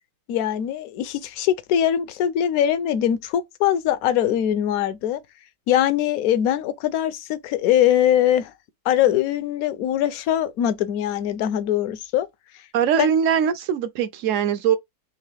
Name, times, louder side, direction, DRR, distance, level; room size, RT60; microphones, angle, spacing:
voice 1, 0.3-5.2 5.7-8.5 8.9-12.3 13.0-13.1, left 11 dB, 75° left, 1.0 m, -22 dB
voice 2, 12.7-14.8, right 8 dB, 70° right, 0.8 m, -21 dB
3.7 x 2.9 x 3.3 m
omnidirectional pair, 1.6 m